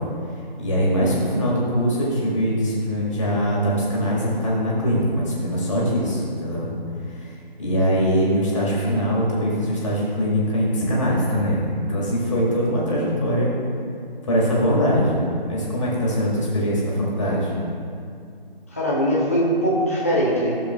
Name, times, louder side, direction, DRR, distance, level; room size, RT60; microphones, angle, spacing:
voice 1, 0.6-6.7 7.6-13.5 14.3-17.5, equal, 30° left, -5 dB, 1.7 m, -22 dB
voice 2, 18.7-20.6, equal, 15° left, -7 dB, 0.7 m, -21 dB
12.5 x 6.8 x 2.3 m, 2.4 s
figure-of-eight pair, 160°, 29 cm